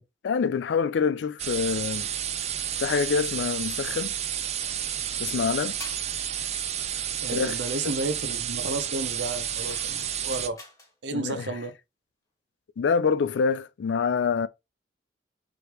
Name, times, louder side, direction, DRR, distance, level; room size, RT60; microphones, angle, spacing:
voice 1, 0.2-2.1 2.8-4.2 5.2-5.8 7.3-7.5 7.8-7.9 11.1-11.5 12.8-14.5, left 5 dB, 85° left, 0.4 m, -26 dB
sound 1, 1.4-10.5, right 9 dB, 35° right, 0.4 m, -31 dB
sound 2, 5.8-6.1 8.7-10.9, left 2 dB, 20° left, 1.3 m, -46 dB
voice 2, 7.2-10.6 11.0-11.7, right 2 dB, 80° right, 0.7 m, -32 dB
4.9 x 3.2 x 3.0 m
head